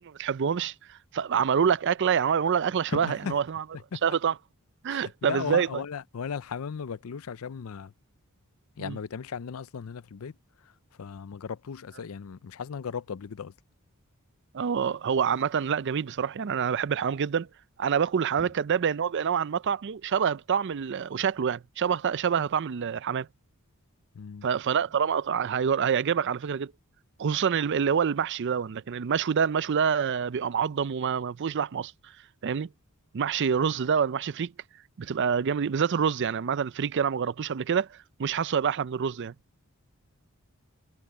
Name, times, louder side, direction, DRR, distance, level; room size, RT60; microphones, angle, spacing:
voice 1, 0.2-3.6 4.0-4.3 4.8-5.7 8.8-9.0 14.5-17.5 17.8-23.3 24.4-26.7 27.2-31.9 32.4-32.7 33.1-34.5 35.0-39.3, right 7 dB, 50° right, 0.4 m, -26 dB
voice 2, 2.9-3.4 3.9-4.0 4.9-7.9 8.8-10.3 11.0-13.5 18.4-18.5 24.1-24.5, left 6 dB, 70° left, 0.5 m, -36 dB
head